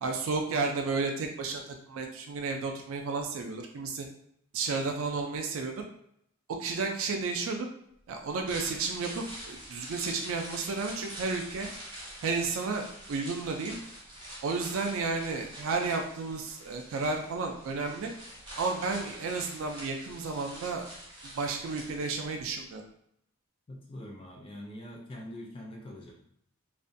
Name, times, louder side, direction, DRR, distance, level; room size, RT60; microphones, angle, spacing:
voice 1, 0.0-4.1 4.5-5.7 6.6-7.7 8.1-11.7 12.2-13.8 14.4-18.1 18.6-20.9 21.3-22.8, right 4 dB, 65° right, 3 dB, 0.3 m, -32 dB
sound 1, 8.3-22.5 22.8-22.9, right 1 dB, 20° right, 0.7 m, -45 dB
voice 2, 23.7-26.1, left 1 dB, 25° left, 0 dB, 0.3 m, -43 dB
2.4 x 2.1 x 2.5 m, 0.72 s
head